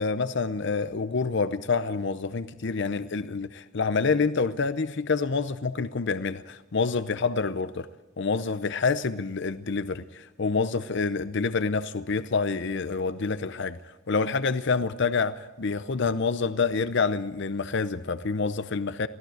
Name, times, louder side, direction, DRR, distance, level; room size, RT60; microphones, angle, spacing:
voice 1, 0.0-7.9 8.2-13.8 14.1-19.1, left 4 dB, 55° left, 0.7 m, -27 dB
23.5 x 16.5 x 7.8 m
head